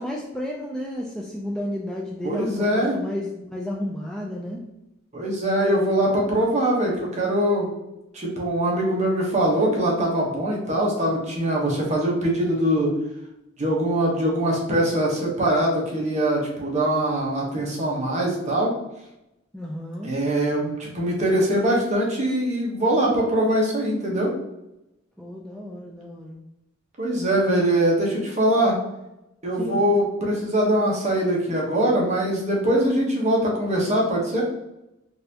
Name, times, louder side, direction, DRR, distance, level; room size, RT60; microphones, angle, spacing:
voice 1, 0.0-4.6 19.5-20.1 25.2-26.4 29.6-29.8, left 1 dB, 5° left, -2 dB, 0.3 m, -32 dB
voice 2, 2.2-3.0 5.1-7.7 8.1-12.9 13.6-18.7 20.0-24.3 27.0-28.8 29.4-34.4, right 1 dB, 35° right, -2 dB, 1.0 m, -22 dB
4.0 x 2.6 x 2.8 m, 0.90 s
head